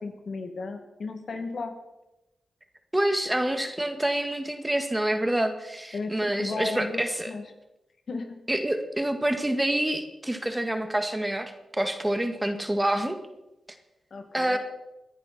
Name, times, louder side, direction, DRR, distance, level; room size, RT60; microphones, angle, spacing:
voice 1, 0.0-1.7 5.9-7.4 8.1-8.2 14.1-14.6, left 3 dB, 65° left, 5 dB, 2.2 m, -34 dB
voice 2, 2.9-7.3 8.5-13.2 14.3-14.6, right 1 dB, 15° right, 7 dB, 1.7 m, -27 dB
21.0 x 10.5 x 4.3 m, 0.96 s
cardioid pair, 60°, 0 cm